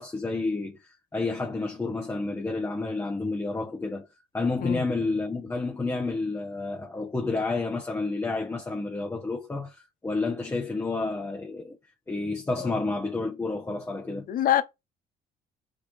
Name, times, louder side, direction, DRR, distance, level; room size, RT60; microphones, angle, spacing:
voice 1, 0.0-4.1 4.3-11.8 12.1-14.3, left 3 dB, 15° left, 1.2 m, -30 dB
voice 2, 14.3-14.6, left 12 dB, 55° left, 0.9 m, -25 dB
5.9 x 5.4 x 3.4 m
cardioid pair, 110°, 17 cm